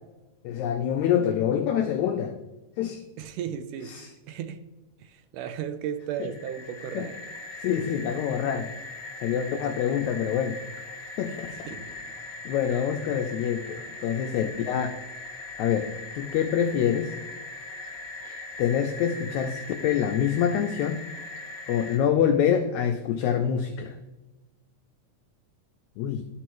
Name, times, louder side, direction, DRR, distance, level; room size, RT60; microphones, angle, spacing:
voice 1, 0.4-2.4 2.8-3.0 3.8-4.1 6.2-6.3 6.9-7.1 7.6-8.7 9.2-10.6 11.2-11.7 12.5-15.0 15.6-17.1 18.2-21.0 21.7-24.0 26.0-26.2, left 9 dB, 85° left, 1.6 m, -26 dB
voice 2, 3.2-4.6 5.0-7.2 11.5-11.9, right 9 dB, 80° right, 2.0 m, -35 dB
sound 1, 6.1-22.0, left 2 dB, 55° left, 0.9 m, -40 dB
12.5 x 4.6 x 3.0 m
omnidirectional pair, 3.8 m